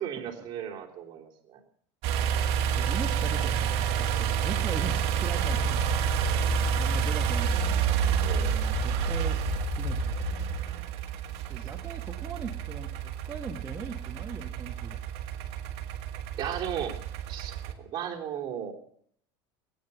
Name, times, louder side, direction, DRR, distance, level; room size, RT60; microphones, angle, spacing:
voice 1, 0.0-1.6 8.2-8.5 16.4-16.9 17.3-18.7, right 9 dB, 40° right, -1 dB, 3.2 m, -35 dB
sound 1, 2.0-17.7, right 9 dB, 55° right, 1.9 m, -29 dB
voice 2, 2.3-5.9 6.4-7.8 8.3-9.4 9.8-10.1 10.4-10.5 11.5-15.0, right 4 dB, 20° right, 0 dB, 1.4 m, -40 dB
sound 2, 5.4-10.6, left 6 dB, 45° left, 4.9 m, -34 dB
19.5 x 9.3 x 6.8 m, 0.64 s
supercardioid pair, 140°, 13 cm